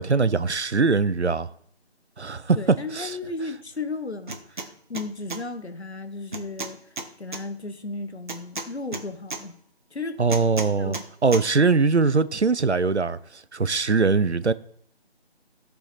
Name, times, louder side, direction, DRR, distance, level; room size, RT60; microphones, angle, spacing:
voice 1, 0.0-1.5 2.2-3.2 10.2-14.5, right 4 dB, 90° right, 0.7 m, -22 dB
voice 2, 2.5-6.8 7.2-9.6 9.9-10.2 10.8-11.0, left 3 dB, 75° left, 1.2 m, -34 dB
sound 1, 4.3-4.7 4.9-5.4 6.3-7.4 8.3-9.4 10.3-11.1 11.3-11.4, right 3 dB, 45° right, 1.1 m, -33 dB
15.0 x 5.6 x 4.3 m
figure-of-eight pair, 155°, 33 cm